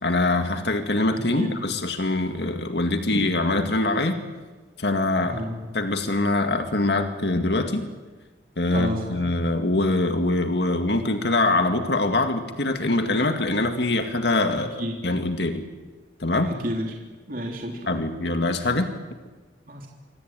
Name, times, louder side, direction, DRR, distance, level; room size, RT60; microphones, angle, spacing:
voice 1, 0.0-4.2 4.8-5.4 5.7-7.9 8.6-15.6 16.2-16.5 17.9-18.9, left 2 dB, 70° left, 6 dB, 2.1 m, -23 dB
voice 2, 1.1-1.5 5.2-5.6 8.7-9.3 14.5-14.9 16.5-16.9 17.3-18.1 19.7-19.9, equal, 50° right, 0 dB, 3.4 m, -31 dB
26.0 x 25.0 x 9.1 m, 1.3 s
head